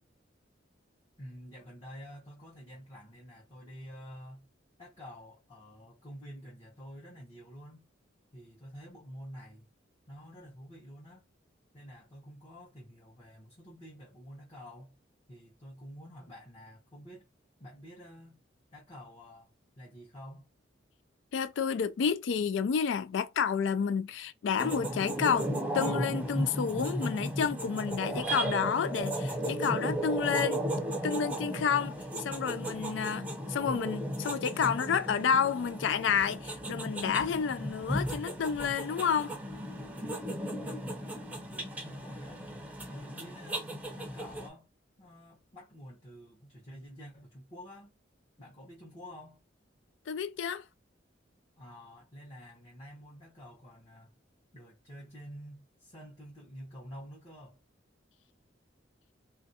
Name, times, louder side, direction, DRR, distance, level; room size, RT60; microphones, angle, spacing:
voice 1, 1.2-4.5 4.8-7.9 8.3-9.7 10.1-11.2 11.7-15.0 15.3-17.3 17.6-18.4 18.7-20.5 40.6-42.4 42.8-44.7 45.0-47.9 48.4-49.4 51.6-54.1 54.5-57.6, equal, 30° left, 0.9 m, -49 dB
voice 2, 21.3-30.6 31.0-39.4 50.1-50.6, left 6 dB, 75° left, 0.3 m, -30 dB
sound 1, 24.6-44.5, right 1 dB, 10° right, 0.5 m, -35 dB
3.3 x 2.5 x 2.7 m
head